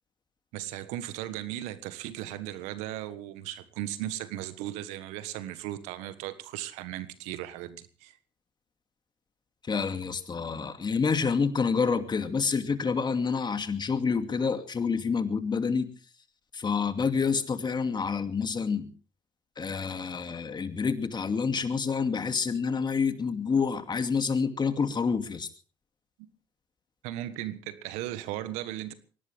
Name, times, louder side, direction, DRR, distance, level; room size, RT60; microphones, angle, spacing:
voice 1, 0.5-8.2 26.2-26.3 27.0-28.9, right 13 dB, 85° right, 1.4 m, -37 dB
voice 2, 9.7-15.9 16.5-18.9 19.6-25.5, left 5 dB, 40° left, 2.6 m, -28 dB
23.0 x 18.0 x 3.5 m
supercardioid pair, 60°, 11 cm